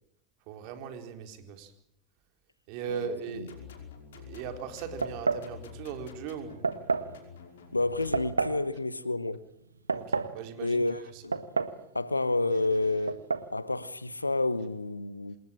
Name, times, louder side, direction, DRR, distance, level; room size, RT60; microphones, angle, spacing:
voice 1, 0.5-1.7 2.7-3.6 4.2-6.7 9.9-11.2, right 7 dB, 55° right, 4.3 m, -39 dB
voice 2, 2.8-3.5 7.7-9.4 10.6-11.4 11.9-13.3 13.5-15.4, left 2 dB, 90° left, 1.1 m, -30 dB
sound 1, 3.3-8.5, left 7 dB, 70° left, 5.3 m, -48 dB
sound 2, 5.0-5.5 6.6-7.1 8.1-8.6 9.6-10.4 11.3-11.8 12.1-12.2 13.1-13.5, right 4 dB, 85° right, 1.4 m, -29 dB
27.0 x 20.5 x 8.9 m
figure-of-eight pair, 75°, 0 cm